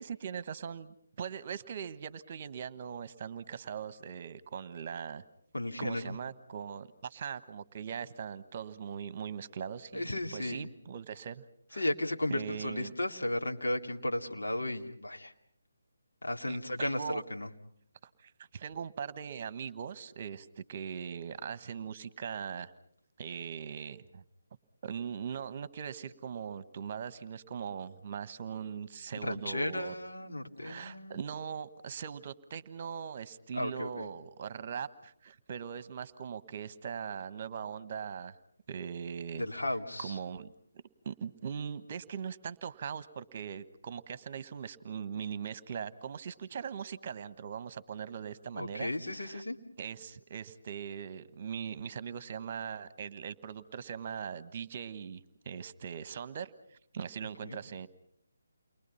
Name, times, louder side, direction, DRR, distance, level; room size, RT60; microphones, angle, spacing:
voice 1, 0.0-5.2 5.8-11.4 11.7-11.9 12.3-12.9 16.5-17.2 18.2-22.7 23.2-24.2 24.8-29.9 30.6-38.3 38.7-39.5 40.0-40.5 41.0-49.4 49.8-57.9, right 7 dB, 40° right, 15 dB, 1.3 m, -40 dB
voice 2, 5.5-6.2 9.9-10.7 11.8-15.3 16.2-17.5 29.2-31.2 33.5-34.1 39.3-40.1 48.5-49.6 57.4-57.6, left 1 dB, 80° left, 2 dB, 2.7 m, -34 dB
29.5 x 23.0 x 5.7 m, 0.65 s
figure-of-eight pair, 150°, 0 cm